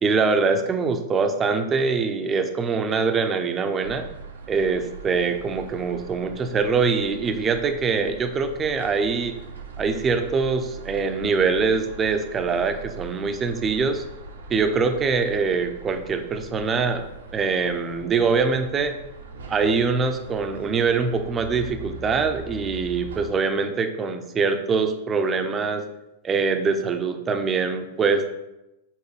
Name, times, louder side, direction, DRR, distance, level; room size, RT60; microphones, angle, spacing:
voice 1, 0.0-4.0 4.5-9.4 9.8-14.0 14.5-17.0 17.3-19.0 19.5-25.8 26.2-28.3, right 4 dB, 25° right, 7 dB, 0.7 m, -23 dB
sound 1, 3.8-23.3, right 3 dB, 80° right, 1.0 m, -41 dB
7.2 x 4.4 x 3.3 m, 0.94 s
hypercardioid pair, 105°, 0 cm